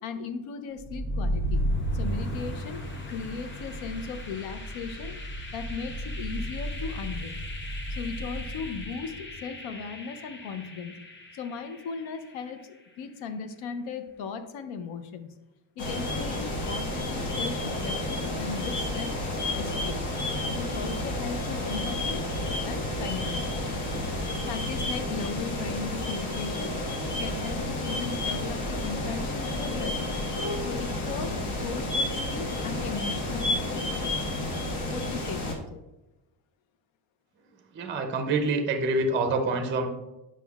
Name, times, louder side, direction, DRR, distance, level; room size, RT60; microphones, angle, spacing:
voice 1, 0.0-1.6 1.9-5.2 5.5-7.4 7.9-11.0 11.3-15.3 15.8-19.1 19.6-20.1 20.6-22.3 22.6-23.5 24.4-26.8 27.2-30.2 30.6-34.3 34.9-35.8, left 5 dB, 80° left, 9 dB, 0.8 m, -37 dB
sound 1, 0.8-12.6, equal, 25° left, 0.7 m, -34 dB
sound 2, 15.8-35.6, left 1 dB, 55° left, 1.4 m, -31 dB
voice 2, 37.7-39.9, right 2 dB, 25° right, 5 dB, 0.5 m, -26 dB
8.1 x 5.9 x 2.3 m, 1.0 s
cardioid pair, 165°, 46 cm